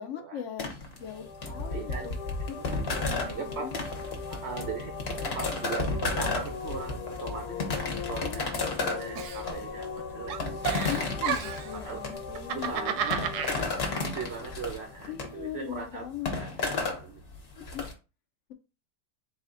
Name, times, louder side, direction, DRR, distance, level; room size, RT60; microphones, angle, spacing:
voice 1, 0.0-2.2 2.5-3.7 8.2-8.8 10.9-12.7 15.1-16.4 17.7-17.9, left 10 dB, 70° left, 7 dB, 0.7 m, -39 dB
sound 1, 0.6-17.9, left 3 dB, 45° left, 1.0 m, -33 dB
sound 2, 1.0-15.7, left 6 dB, 85° left, 1.2 m, -41 dB
voice 2, 1.7-2.1 2.7-2.8 3.2-3.7 4.3-4.9 5.3-7.6 8.1-10.4 11.7-12.0 12.5-16.1 16.3-16.5 17.0-17.2, right 5 dB, 65° right, 4 dB, 0.6 m, -39 dB
Giggle, 9.2-10.0 10.3-11.8 12.3-13.6, right 9 dB, 85° right, 1.2 m, -32 dB
4.0 x 2.7 x 3.7 m, 0.31 s
omnidirectional pair, 1.7 m